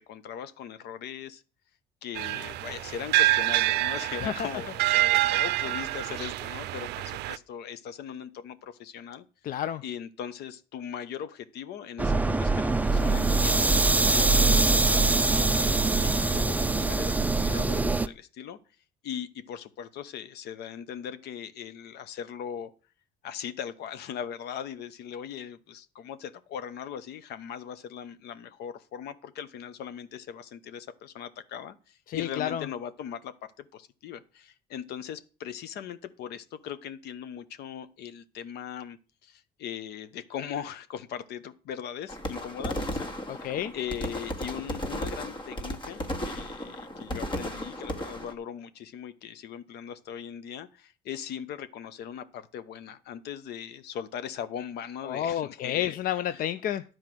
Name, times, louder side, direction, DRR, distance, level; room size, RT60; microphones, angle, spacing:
voice 1, 0.0-1.4 2.0-9.2 9.8-18.6 19.0-22.7 23.2-56.0 56.3-56.5, left 8 dB, 75° left, 13 dB, 1.0 m, -39 dB
sound 1, 2.2-7.4, right 17 dB, 80° right, 0.5 m, -27 dB
voice 2, 9.4-9.8 32.1-32.6 43.3-43.7 55.1-56.8, left 11 dB, 55° left, 12 dB, 0.5 m, -30 dB
sound 2, 12.0-18.1, right 3 dB, 10° right, 0.5 m, -23 dB
sound 3, 42.1-48.3, equal, 30° left, 1.6 m, -35 dB
10.5 x 4.7 x 7.7 m, 0.36 s
cardioid pair, 110°, 17 cm